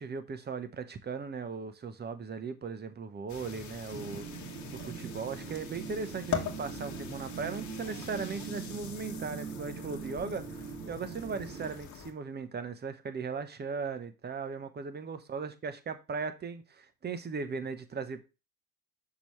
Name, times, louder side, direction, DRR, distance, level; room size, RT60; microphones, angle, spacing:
voice 1, 0.0-4.3 4.7-18.2, right 5 dB, 20° right, 0.9 m, -38 dB
sound 1, 3.3-12.1, left 8 dB, 35° left, 1.3 m, -42 dB
sound 2, 3.9-11.7, right 6 dB, 75° right, 2.4 m, -42 dB
6.1 x 5.7 x 3.1 m
hypercardioid pair, 80°, 47 cm